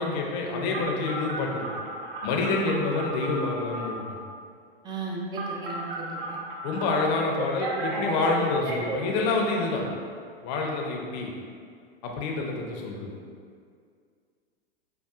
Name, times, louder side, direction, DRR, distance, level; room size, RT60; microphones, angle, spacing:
voice 1, 0.0-1.7 2.2-4.0 6.6-9.9 10.4-11.3 12.0-13.2, left 3 dB, 45° left, 0 dB, 0.7 m, -27 dB
Telephone, 0.7-4.1 5.3-6.9 7.4-9.0, right 2 dB, 50° right, 0.9 m, -34 dB
voice 2, 4.8-6.4, right 3 dB, 15° right, -1 dB, 0.5 m, -35 dB
5.4 x 2.3 x 2.4 m, 2.2 s
hypercardioid pair, 100°, 30 cm